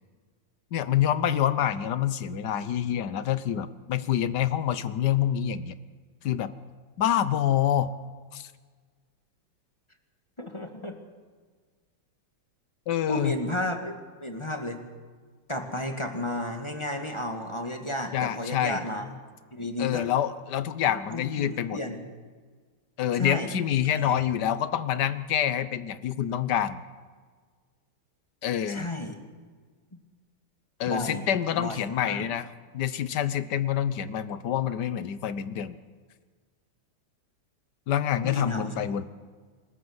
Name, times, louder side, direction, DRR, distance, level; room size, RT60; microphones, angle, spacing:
voice 1, 0.7-5.7 6.2-6.5 7.0-7.9 8.3-8.5 12.9-13.4 18.1-18.8 19.8-21.8 23.0-26.8 28.4-28.9 30.8-32.5 32.7-35.8 37.9-39.0, left 10 dB, 60° left, 14 dB, 1.5 m, -27 dB
voice 2, 10.4-11.0 13.1-14.8 15.5-19.1 19.5-20.1 21.1-22.0 23.2-23.5 24.0-24.2 28.7-29.2 30.9-31.3 31.5-32.3 38.2-38.8, left 1 dB, 15° left, 4 dB, 1.8 m, -32 dB
27.5 x 13.0 x 8.1 m, 1.5 s
omnidirectional pair, 2.2 m